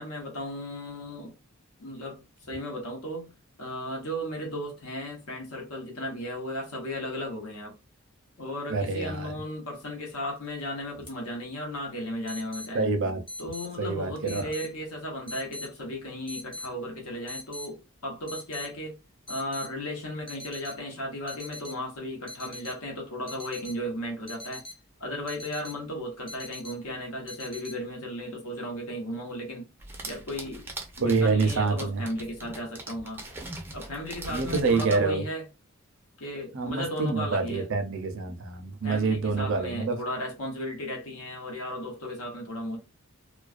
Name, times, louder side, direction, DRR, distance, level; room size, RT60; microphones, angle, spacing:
voice 1, 0.0-1.3 1.8-3.3 3.6-7.7 8.4-12.9 13.4-19.0 19.3-24.6 25.0-29.7 30.0-30.7 31.0-33.3 33.7-35.4 36.2-37.7 38.8-42.8, left 1 dB, 70° left, 1.0 m, -35 dB
voice 2, 8.7-9.3 12.7-13.2 13.8-14.5 31.0-32.0 34.3-35.2 36.5-40.0, right 4 dB, 60° right, 0.5 m, -26 dB
sound 1, 10.4-10.6 11.1-11.2 12.3-12.7 13.3-13.7 14.3-14.7 15.3-15.7 16.3-16.7 17.3-17.7 18.3-18.7 19.3-19.7 20.3-20.8 21.3-21.8 22.3-22.8 23.3-23.8 24.3-24.8 25.3-25.8 26.3-26.8 27.3-27.8, left 1 dB, 20° left, 0.7 m, -41 dB
sound 2, 29.8-35.0, right 2 dB, 10° right, 0.4 m, -41 dB
2.4 x 2.2 x 2.4 m
head